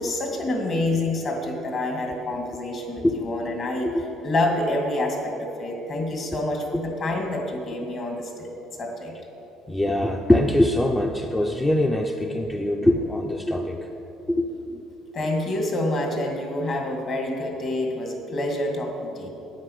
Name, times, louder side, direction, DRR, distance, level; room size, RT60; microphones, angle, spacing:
voice 1, 0.0-3.9 4.2-8.5 8.8-9.1 15.1-19.3, left 1 dB, 40° left, 2 dB, 2.1 m, -27 dB
voice 2, 9.7-13.9 14.3-14.8, left 1 dB, 10° left, 3 dB, 0.6 m, -23 dB
9.5 x 9.1 x 6.6 m, 3.0 s
cardioid pair, 130°, 0 cm